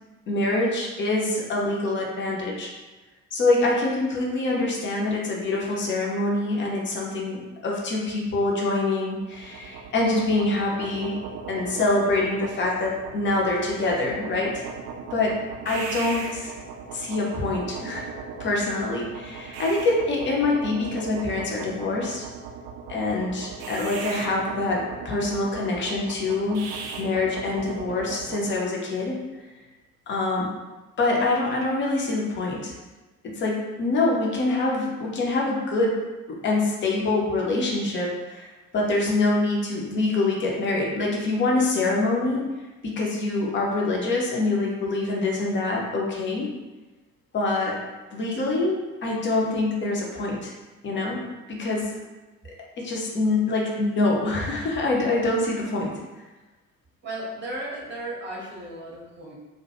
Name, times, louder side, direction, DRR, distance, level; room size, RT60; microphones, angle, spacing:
voice 1, 0.3-2.7 3.3-11.2 11.5-14.7 15.1-15.4 15.6-16.5 16.9-18.1 18.4-22.3 22.9-29.2 30.1-30.5 31.0-32.7 33.2-36.0 36.3-42.5 42.8-46.5 47.3-47.8 48.1-50.5 50.8-51.2 51.5-51.9 52.8-55.9, left 2 dB, 30° left, -2 dB, 0.5 m, -25 dB
sound 1, 9.2-28.4, right 5 dB, 45° right, 0.4 m, -37 dB
voice 2, 57.0-59.3, right 1 dB, 25° right, -4 dB, 0.8 m, -35 dB
2.2 x 2.1 x 2.8 m, 1.2 s
figure-of-eight pair, 55°, 42 cm